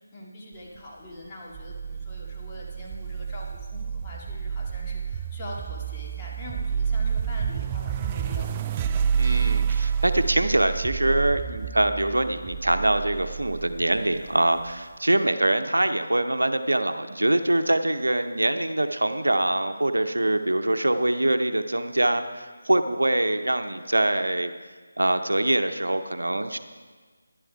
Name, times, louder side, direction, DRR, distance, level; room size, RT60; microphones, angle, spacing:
voice 1, 0.1-8.5 8.7-8.9, left 1 dB, 20° left, -5 dB, 2.2 m, -42 dB
sound 1, 1.5-14.7, right 7 dB, 20° right, 0.3 m, -29 dB
voice 2, 9.2-24.5 25.0-26.6, right 1 dB, 80° right, 8 dB, 0.7 m, -24 dB
11.0 x 11.0 x 4.7 m, 1.4 s
figure-of-eight pair, 160°, 0 cm